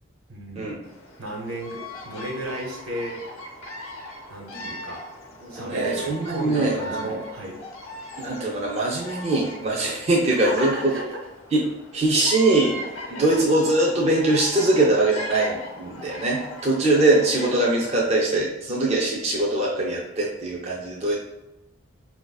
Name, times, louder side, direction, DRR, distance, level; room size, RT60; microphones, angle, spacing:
voice 1, 0.3-0.8 1.2-3.2 4.3-5.0 5.5-7.6 10.4-11.2 13.1-13.5, right 1 dB, 85° right, -1 dB, 1.1 m, -34 dB
Bird vocalization bird call bird song, 0.8-18.1, left 1 dB, 85° left, 0.6 m, -39 dB
voice 2, 5.4-7.2 8.2-10.7 11.5-11.6 11.9-12.8 13.1-21.2, right 2 dB, 30° right, -2 dB, 0.4 m, -22 dB
4.5 x 2.5 x 2.3 m, 0.95 s
head